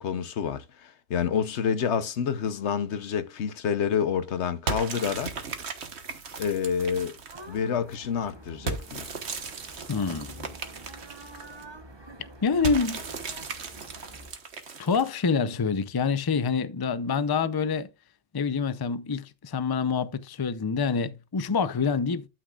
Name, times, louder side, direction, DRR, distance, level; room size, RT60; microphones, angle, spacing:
voice 1, 0.0-5.3 6.4-7.1 7.5-9.1, left 7 dB, 80° left, 1.1 m, -28 dB
Foley Impact Stones Strong Debris Stereo DS, 4.7-7.6 8.7-11.6 12.6-15.3, right 4 dB, 75° right, 1.5 m, -36 dB
sound 1, 7.3-14.3, right 1 dB, 25° right, 1.0 m, -47 dB
voice 2, 9.9-10.5 12.4-13.0 14.8-17.9 18.3-22.3, left 5 dB, 30° left, 0.5 m, -26 dB
12.0 x 6.4 x 2.4 m
omnidirectional pair, 1.1 m